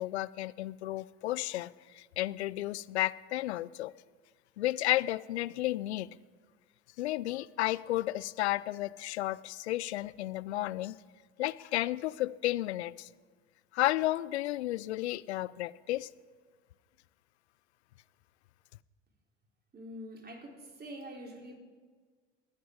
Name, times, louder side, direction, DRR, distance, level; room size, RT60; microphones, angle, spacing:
voice 1, 0.0-3.9 4.6-6.1 7.0-10.9 11.4-13.1 13.7-16.1, left 16 dB, 80° left, 18 dB, 0.5 m, -32 dB
voice 2, 19.7-21.6, equal, 30° right, 2 dB, 3.4 m, -45 dB
21.5 x 9.3 x 4.9 m, 1.6 s
hypercardioid pair, 65°, 33 cm